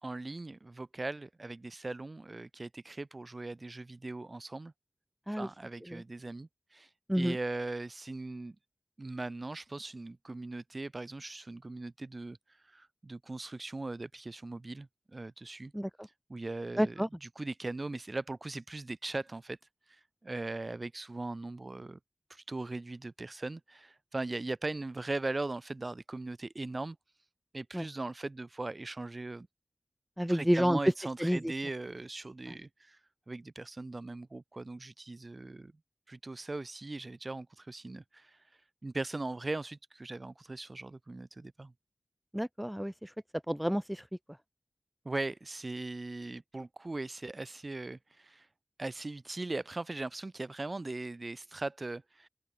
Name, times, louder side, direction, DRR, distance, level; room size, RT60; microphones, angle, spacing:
voice 1, 0.0-4.7 5.4-8.6 9.0-12.4 12.7-15.7 16.3-19.6 19.9-22.0 22.3-27.0 27.5-29.5 30.3-33.0 33.3-35.7 36.1-38.4 38.8-41.7 45.0-48.5 48.8-52.3, right 2 dB, 45° right, 3.8 m, -39 dB
voice 2, 16.8-17.1 27.7-27.8 30.2-30.8 31.2-31.4 42.3-43.1 43.5-44.0, equal, 5° right, 0.5 m, -29 dB
open air
wide cardioid pair, 80°, 0 cm